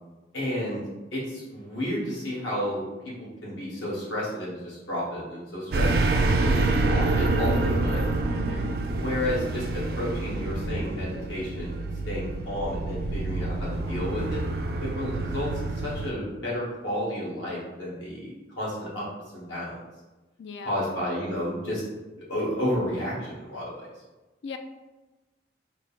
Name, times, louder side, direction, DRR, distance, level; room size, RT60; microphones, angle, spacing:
voice 1, 0.3-0.8 1.1-8.1 9.0-11.8 12.1-14.4 14.8-19.1 19.3-19.8 20.6-21.8 22.2-23.9, equal, 85° left, -6 dB, 1.4 m, -32 dB
sound 1, 5.7-16.1, right 2 dB, 55° right, 0.3 m, -27 dB
voice 2, 8.3-8.8 20.4-20.8 24.4-24.6, left 5 dB, 65° left, 7 dB, 0.3 m, -38 dB
3.8 x 2.1 x 3.8 m, 1.1 s
head